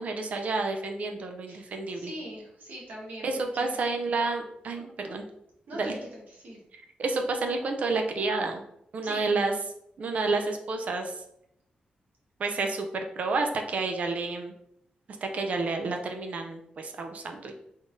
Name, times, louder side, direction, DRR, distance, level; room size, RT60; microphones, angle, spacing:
voice 1, 0.0-2.1 3.2-5.2 5.7-5.9 7.0-8.6 8.9-9.5 10.0-11.1 12.4-14.5 15.2-17.6, right 3 dB, 50° right, 4 dB, 0.5 m, -30 dB
voice 2, 1.5-3.8 4.8-5.1 5.7-6.6 9.0-9.3, equal, 75° right, -3 dB, 1.3 m, -43 dB
3.8 x 3.5 x 2.6 m, 0.76 s
wide cardioid pair, 175°, 3 cm